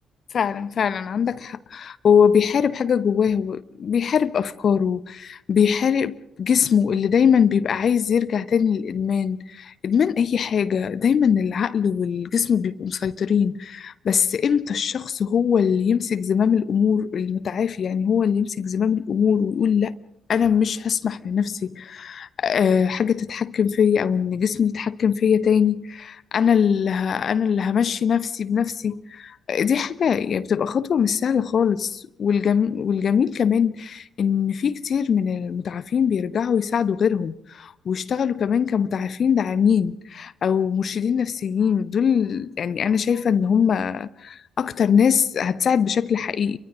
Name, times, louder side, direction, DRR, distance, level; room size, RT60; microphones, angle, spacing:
voice 1, 0.3-19.9 20.3-46.6, left 7 dB, 45° left, 0.8 m, -22 dB
29.5 x 24.0 x 3.7 m
figure-of-eight pair, 40°, 0 cm